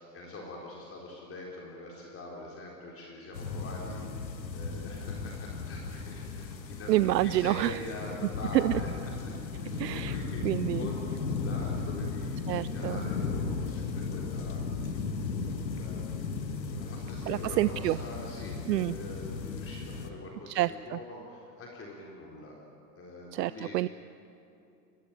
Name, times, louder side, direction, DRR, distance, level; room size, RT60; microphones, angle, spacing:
voice 1, 0.0-9.2 9.6-10.4 10.7-15.1 15.6-16.1 16.7-20.6 20.8-22.6 23.0-23.7, left 2 dB, 25° left, -2 dB, 4.0 m, -44 dB
sound 1, 3.3-20.1, left 4 dB, 85° left, 1.9 m, -36 dB
voice 2, 6.9-7.8 8.5-8.8 9.8-10.2 10.4-10.9 12.5-13.1 17.3-18.0 18.7-18.9 20.5-21.0 23.3-23.9, right 15 dB, 75° right, 17 dB, 0.6 m, -28 dB
23.0 x 18.0 x 9.0 m, 2.8 s
hypercardioid pair, 105°, 50 cm